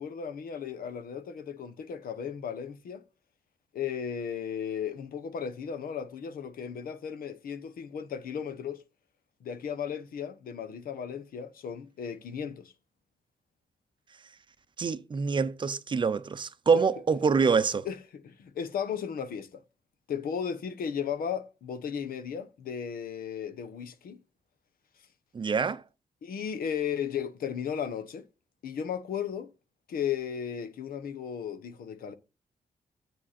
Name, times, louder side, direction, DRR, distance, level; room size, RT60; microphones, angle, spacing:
voice 1, 0.0-3.0 3.7-8.8 9.4-12.7 17.8-18.0 18.2-19.6 20.1-24.2 26.2-28.3 28.6-29.5 29.9-32.1, left 8 dB, 90° left, 1.1 m, -35 dB
voice 2, 14.8-17.9 25.3-25.8, right 5 dB, 35° right, 0.6 m, -26 dB
8.4 x 7.5 x 4.3 m
wide cardioid pair, 150°, 15 cm